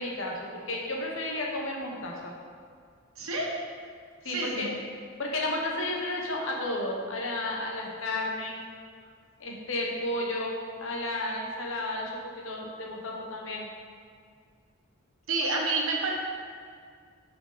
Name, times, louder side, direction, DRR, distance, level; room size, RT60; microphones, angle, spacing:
voice 1, 0.0-2.3 4.2-4.7 5.2-8.6 9.4-13.7, left 1 dB, 70° left, -1 dB, 1.0 m, -32 dB
voice 2, 3.2-3.5 4.2-4.7 15.3-16.1, right 3 dB, 85° right, -1 dB, 1.1 m, -29 dB
6.1 x 4.9 x 4.0 m, 2.1 s
head